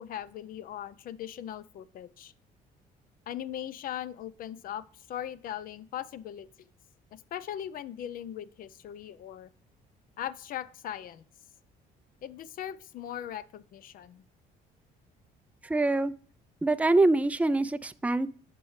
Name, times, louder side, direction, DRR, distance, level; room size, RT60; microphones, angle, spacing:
voice 1, 0.0-2.3 3.3-6.5 7.1-9.5 10.2-11.2 12.2-14.2, left 10 dB, 55° left, 18 dB, 0.5 m, -39 dB
voice 2, 15.6-16.1 16.6-18.3, right 2 dB, 10° right, 12 dB, 0.4 m, -24 dB
9.4 x 6.1 x 3.2 m, 0.43 s
cardioid pair, 110°, 17 cm